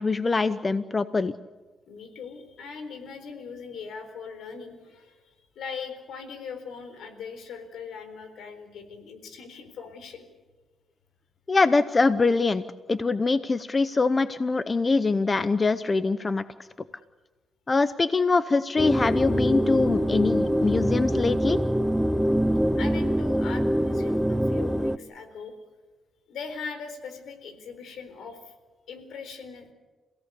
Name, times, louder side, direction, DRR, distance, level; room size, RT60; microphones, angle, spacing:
voice 1, 0.0-1.3 11.5-12.6 12.9-16.4 17.7-21.6, left 3 dB, 30° left, 13 dB, 0.7 m, -23 dB
voice 2, 1.9-10.3 22.8-25.5 26.3-28.5 28.9-29.7, left 5 dB, 80° left, 8 dB, 4.0 m, -40 dB
sound 1, 18.8-25.0, equal, 5° right, 0.7 m, -24 dB
28.0 x 17.0 x 8.4 m, 1.3 s
cardioid pair, 100°, 0 cm